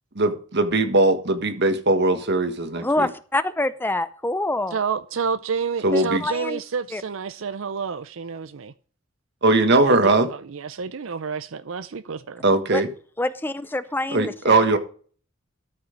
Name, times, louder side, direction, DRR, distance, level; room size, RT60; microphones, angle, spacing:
voice 1, 0.1-3.1 5.8-6.2 9.4-10.3 12.4-12.9 14.1-14.8, right 2 dB, 60° right, 1.5 m, -20 dB
voice 2, 2.8-4.8 5.9-6.6 6.9-7.0 12.7-12.8 13.2-14.6, left 2 dB, 10° left, 0.5 m, -26 dB
voice 3, 4.7-8.7 9.8-12.4, right 5 dB, 75° right, 0.6 m, -29 dB
13.0 x 5.8 x 5.2 m
head